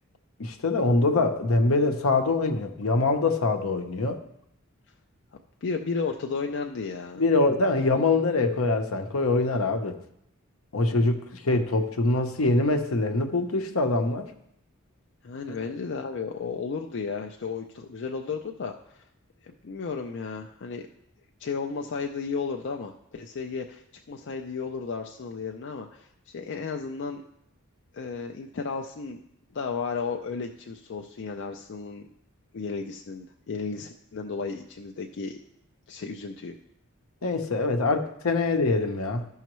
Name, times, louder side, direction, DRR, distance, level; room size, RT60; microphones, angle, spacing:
voice 1, 0.4-4.2 7.2-10.0 10.7-14.3 15.5-15.6 37.2-39.3, left 3 dB, 75° left, 6 dB, 0.8 m, -24 dB
voice 2, 5.6-7.2 15.2-19.1 19.4-20.9 21.4-23.8 24.1-27.2 27.9-29.2 29.5-32.1 32.5-35.4 35.9-36.6, left 5 dB, 55° left, 3 dB, 0.5 m, -33 dB
13.5 x 5.6 x 3.1 m, 0.75 s
head